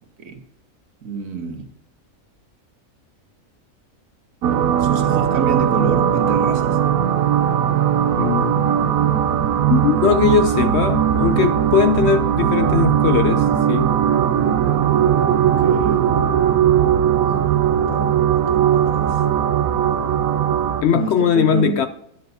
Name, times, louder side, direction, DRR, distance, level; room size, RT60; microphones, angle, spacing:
voice 1, 1.0-1.7 4.8-6.8 15.3-16.1 17.2-19.2 20.9-21.9, right 4 dB, 70° right, 1.6 m, -28 dB
sound 1, 4.4-20.8, right 9 dB, 85° right, 1.1 m, -18 dB
voice 2, 8.2-9.0 9.7-14.0 20.8-21.9, left 7 dB, 65° left, 0.7 m, -19 dB
12.0 x 10.0 x 2.7 m
omnidirectional pair, 1.5 m